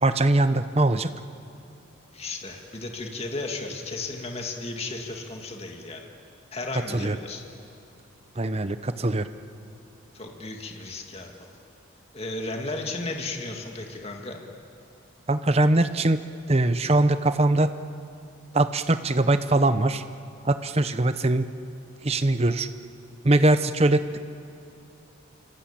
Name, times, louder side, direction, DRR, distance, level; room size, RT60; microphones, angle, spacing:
voice 1, 0.0-1.1 6.9-7.2 8.4-9.3 15.3-16.2 16.5-17.7 18.5-20.0 20.4-21.5 22.0-22.7 23.2-24.2, right 2 dB, 30° right, 11 dB, 0.8 m, -22 dB
voice 2, 2.1-6.1 6.5-7.4 10.1-11.5 12.1-14.4, left 2 dB, 30° left, 2 dB, 2.2 m, -34 dB
26.5 x 25.0 x 8.9 m, 2.6 s
head